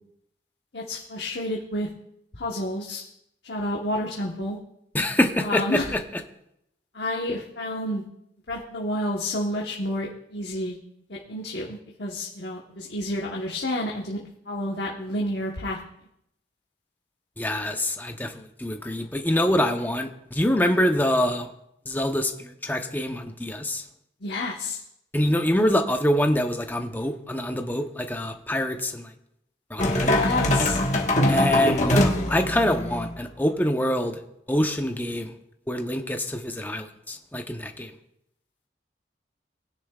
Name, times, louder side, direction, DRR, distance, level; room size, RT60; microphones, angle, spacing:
voice 1, 0.7-1.9 2.3-3.0 3.4-4.6 5.4-5.9 6.9-8.0 8.5-10.8 11.1-15.8 24.2-24.8 30.1-30.8, left 1 dB, 65° left, -2 dB, 1.2 m, -30 dB
voice 2, 4.9-6.0 17.4-21.5 21.9-23.8 25.1-29.1 29.7-30.2 31.3-34.2 34.5-35.3 35.7-37.9, left 1 dB, 10° left, 5 dB, 0.8 m, -25 dB
sound 1, 29.8-33.1, left 1 dB, 40° left, 1.4 m, -22 dB
19.5 x 10.0 x 2.4 m, 0.79 s
head